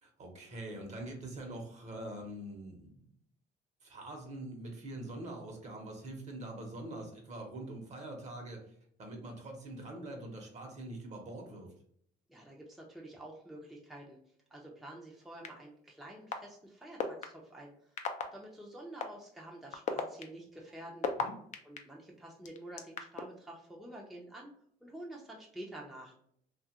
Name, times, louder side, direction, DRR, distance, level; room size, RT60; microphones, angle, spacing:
voice 1, 0.0-3.1 3.8-11.7 21.2-21.4, right 1 dB, 45° right, 2 dB, 1.0 m, -44 dB
voice 2, 12.3-14.2 14.5-17.9 18.3-21.1 21.6-24.5 24.8-26.1, right 1 dB, ahead, -3 dB, 0.6 m, -49 dB
sound 1, 15.4-15.5 16.3-16.4 17.0-17.2 18.0-18.2 19.0-19.1 19.7-21.8 22.4-23.2, left 7 dB, 45° left, 0.5 m, -33 dB
2.8 x 2.4 x 2.8 m, 0.65 s
cardioid pair, 110°, 17 cm